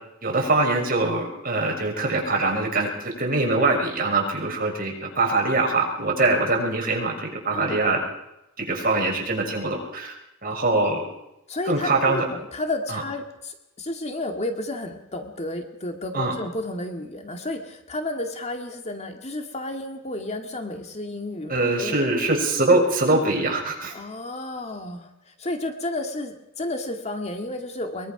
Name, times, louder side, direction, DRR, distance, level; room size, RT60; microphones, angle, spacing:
voice 1, 0.2-8.0 8.6-10.2 10.4-11.1 11.6-12.2 12.9-13.0 16.1-16.3 21.5-23.9, right 2 dB, 45° right, 1 dB, 6.3 m, -23 dB
voice 2, 10.4-10.8 11.5-22.0 23.9-28.1, left 2 dB, 30° left, 5 dB, 2.3 m, -32 dB
23.0 x 23.0 x 6.1 m, 0.87 s
head